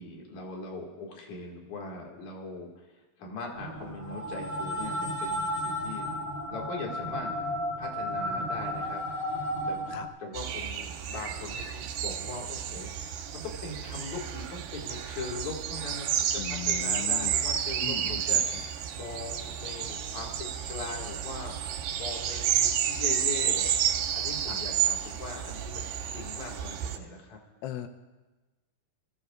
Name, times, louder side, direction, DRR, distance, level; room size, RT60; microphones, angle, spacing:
voice 1, 0.0-2.9 3.2-6.1 6.5-7.4 7.8-9.0 9.3-9.8 10.2-27.4, left 3 dB, 50° left, -1 dB, 2.8 m, -41 dB
sound 1, 3.6-10.1, equal, 20° left, 3.5 m, -33 dB
sound 2, 10.3-27.0, right 9 dB, 90° right, 3.3 m, -31 dB
voice 2, 16.4-17.4 17.8-18.7 24.5-24.6 27.6-27.9, left 12 dB, 90° left, 7 dB, 2.1 m, -39 dB
27.5 x 15.5 x 2.4 m, 1.2 s
omnidirectional pair, 5.0 m